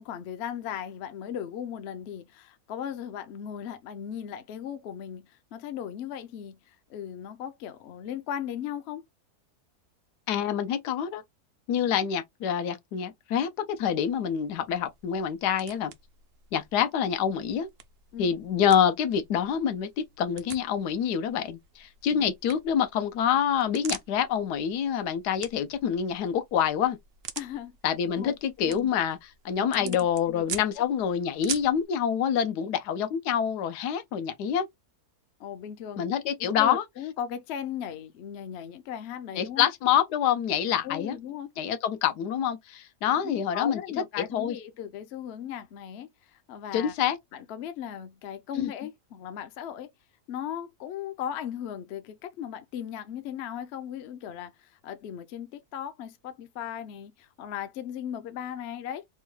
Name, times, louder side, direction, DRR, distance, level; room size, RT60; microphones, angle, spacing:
voice 1, 0.0-9.0 18.1-18.3 22.1-22.3 27.4-27.8 28.2-28.9 29.7-30.0 30.3-30.8 35.4-36.1 36.4-39.7 40.8-41.5 43.1-46.9 47.3-49.9 50.3-59.1, left 9 dB, 65° left, 0.7 m, -37 dB
voice 2, 10.3-11.2 11.7-15.9 16.5-17.7 18.2-27.0 27.8-34.7 36.0-36.8 39.4-41.2 41.6-43.8 44.3-44.6 46.7-47.2 48.6-48.7, left 8 dB, 90° left, 1.2 m, -26 dB
sound 1, 13.7-31.8, right 8 dB, 75° right, 0.5 m, -45 dB
3.5 x 2.2 x 3.1 m
omnidirectional pair, 1.7 m